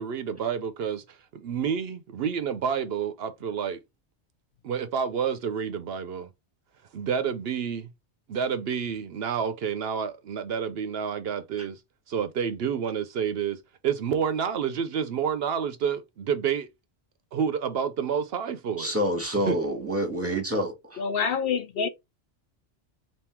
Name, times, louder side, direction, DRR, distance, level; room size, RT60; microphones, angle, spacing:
voice 1, 0.0-3.8 4.6-6.3 6.9-7.9 8.3-11.8 12.1-16.7 17.3-18.9 19.5-19.6, right 7 dB, 65° right, 0.8 m, -29 dB
voice 2, 18.8-21.0, equal, 15° right, 1.1 m, -27 dB
voice 3, 21.0-21.9, left 6 dB, 65° left, 0.7 m, -26 dB
3.5 x 2.7 x 4.3 m
omnidirectional pair, 1.1 m